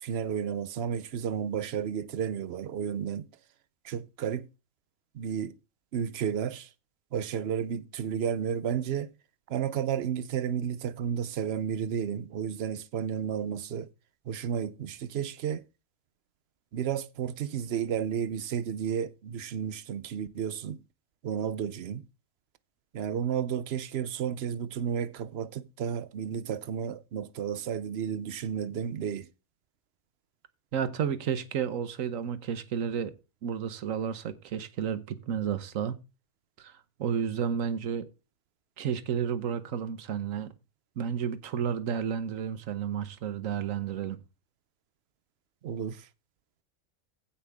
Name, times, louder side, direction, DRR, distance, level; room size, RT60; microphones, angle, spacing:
voice 1, 0.0-3.3 3.8-4.5 5.1-5.5 5.9-6.7 7.1-9.1 9.5-13.9 14.3-15.6 16.7-20.8 21.2-22.0 22.9-29.3 45.6-46.1, right 8 dB, 55° right, 0.8 m, -32 dB
voice 2, 30.7-33.1 33.4-36.0 36.6-38.1 38.8-40.5 41.0-44.2, right 7 dB, 75° right, 1.3 m, -31 dB
16.0 x 5.5 x 3.5 m
omnidirectional pair, 1.4 m